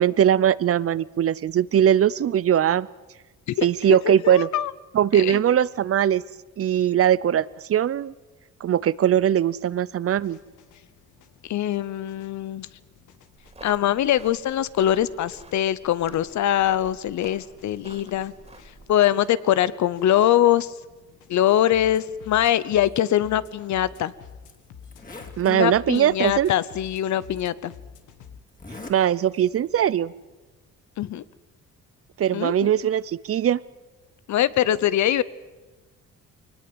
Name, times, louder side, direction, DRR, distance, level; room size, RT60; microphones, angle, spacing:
voice 1, 0.0-2.9 3.6-4.5 4.9-6.2 6.6-8.1 8.6-10.4 25.4-26.5 28.9-30.1 32.2-33.6, right 10 dB, 50° right, 20 dB, 0.6 m, -20 dB
voice 2, 3.5-4.7 5.1-5.4 11.4-12.7 13.6-18.3 18.9-20.8 21.3-24.1 25.4-27.7 31.0-31.2 32.3-32.7 34.3-35.2, left 12 dB, 70° left, 17 dB, 0.9 m, -23 dB
sound 1, 10.2-28.4, left 7 dB, 90° left, 1.7 m, -50 dB
sound 2, 13.4-18.9, right 2 dB, 20° right, 3.0 m, -48 dB
Zipper (clothing), 23.9-24.0 24.5-24.6 24.8-25.4 26.3-26.4 27.3-27.4 28.5-29.0 29.3-29.7, left 2 dB, 30° left, 3.3 m, -41 dB
24.0 x 19.5 x 7.9 m, 1.2 s
cardioid pair, 90°, 30 cm